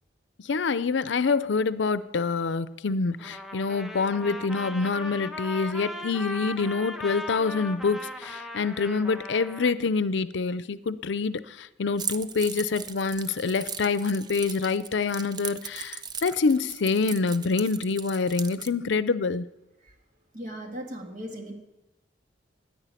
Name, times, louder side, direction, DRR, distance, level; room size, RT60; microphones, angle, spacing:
voice 1, 0.4-19.5, left 4 dB, 80° left, 15 dB, 0.5 m, -26 dB
Trumpet, 3.2-9.7, left 1 dB, ahead, 1.0 m, -38 dB
Keys jangling, 12.0-18.7, right 6 dB, 25° right, 0.5 m, -38 dB
voice 2, 20.3-21.5, equal, 45° right, 2 dB, 2.1 m, -37 dB
10.5 x 10.0 x 8.3 m, 0.99 s
head